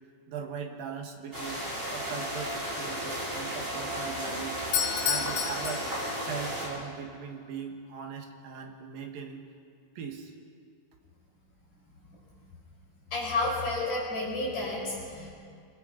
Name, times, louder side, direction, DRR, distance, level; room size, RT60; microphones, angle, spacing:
voice 1, 0.3-1.7 1.9-4.6 5.0-5.9 6.3-9.5 10.0-10.3, right 6 dB, 70° right, 3 dB, 3.3 m, -39 dB
sound 1, 1.3-6.7, equal, 20° right, 6.3 m, -34 dB
Doorbell, 4.6-6.5, left 8 dB, 70° left, 2.8 m, -31 dB
voice 2, 13.1-15.3, left 2 dB, 45° left, -4 dB, 6.7 m, -31 dB
28.0 x 19.0 x 5.2 m, 2.3 s
omnidirectional pair, 4.3 m